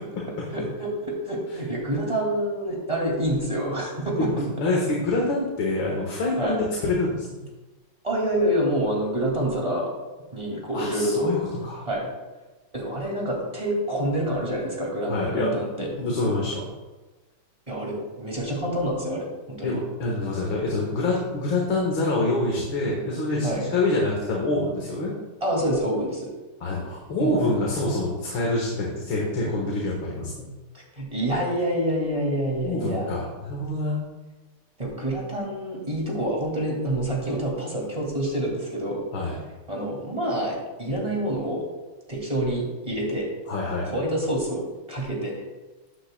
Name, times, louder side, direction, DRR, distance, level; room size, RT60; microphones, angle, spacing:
voice 1, 0.5-4.3 6.4-6.6 8.0-9.9 10.3-11.3 11.9-12.1 12.7-15.9 17.7-19.7 23.4-23.7 25.4-26.3 27.2-27.4 30.7-33.3 34.8-39.1 39.7-41.7 42.1-43.3 43.8-45.4, right 1 dB, 15° right, -3 dB, 2.3 m, -27 dB
voice 2, 4.3-7.4 10.7-11.8 15.1-15.6 15.9-16.7 19.6-25.1 26.6-30.5 32.6-34.0 39.1-39.4 43.5-43.9, left 2 dB, 75° left, -2 dB, 2.3 m, -26 dB
13.5 x 8.8 x 2.3 m, 1.2 s
omnidirectional pair, 2.2 m